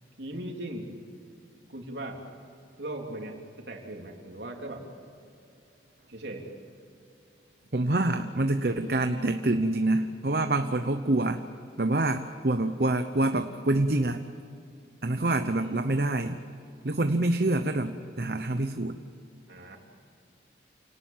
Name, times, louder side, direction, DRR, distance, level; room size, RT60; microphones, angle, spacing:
voice 1, 0.2-0.9 1.7-2.2 2.8-4.9 6.1-6.5 15.4-15.8 19.5-19.8, right 1 dB, 70° right, 1 dB, 3.5 m, -38 dB
voice 2, 7.7-11.4 11.8-14.2 15.0-16.4 16.8-19.0, right 2 dB, 55° right, 7 dB, 0.9 m, -26 dB
28.5 x 18.5 x 7.5 m, 2.6 s
head